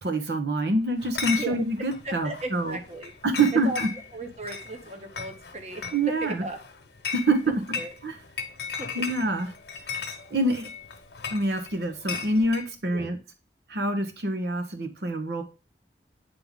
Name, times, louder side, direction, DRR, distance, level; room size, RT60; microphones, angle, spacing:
voice 1, 0.0-2.8 3.2-3.9 5.9-6.4 7.1-7.5 8.0-8.2 8.9-9.5 9.9-10.7 11.3-13.2 13.7-15.4, right 2 dB, 70° right, 7 dB, 0.9 m, -26 dB
Chatter / Chink clink, 1.0-12.7, left 6 dB, 70° left, 1.0 m, -37 dB
voice 2, 2.0-3.1 3.6-3.8 4.1-5.8 6.2-6.6 7.8-7.9 8.8-8.9 12.9-13.1, right 2 dB, 40° right, 4 dB, 1.0 m, -36 dB
8.7 x 3.6 x 3.6 m, 0.31 s
head